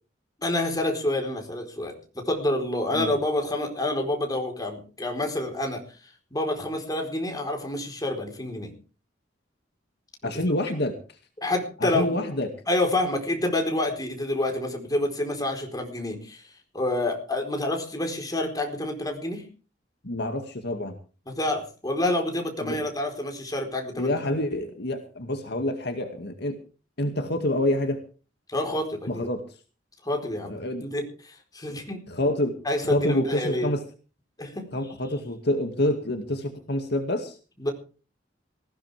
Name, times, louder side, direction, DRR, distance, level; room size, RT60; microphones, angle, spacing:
voice 1, 0.4-8.7 10.5-10.6 11.4-12.2 12.7-19.5 21.3-24.1 28.5-29.3 30.0-32.0 32.6-33.7 34.4-34.7 37.6-37.7, left 1 dB, 20° left, 3 dB, 4.3 m, -28 dB
voice 2, 10.2-10.9 11.8-12.5 20.0-21.0 22.6-22.8 24.0-26.6 27.0-28.0 29.1-29.4 30.4-30.9 32.1-32.5 32.8-33.8 34.7-37.4, left 1 dB, 60° left, 5 dB, 2.2 m, -27 dB
19.5 x 16.0 x 3.5 m, 0.37 s
head